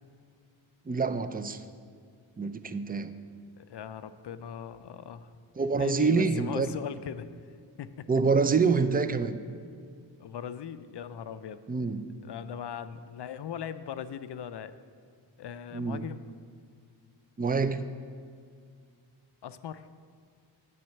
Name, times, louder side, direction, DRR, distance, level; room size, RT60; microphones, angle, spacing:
voice 1, 0.9-1.6 2.4-3.1 5.6-6.7 8.1-9.4 11.7-12.1 15.7-16.1 17.4-17.8, right 4 dB, 20° right, 11 dB, 0.4 m, -26 dB
voice 2, 3.6-5.4 5.8-7.3 7.8-8.1 10.2-11.6 12.2-14.7 15.4-16.2 19.4-19.9, left 8 dB, 60° left, 13 dB, 0.5 m, -39 dB
7.6 x 5.6 x 7.7 m, 2.2 s
cardioid pair, 50°, 48 cm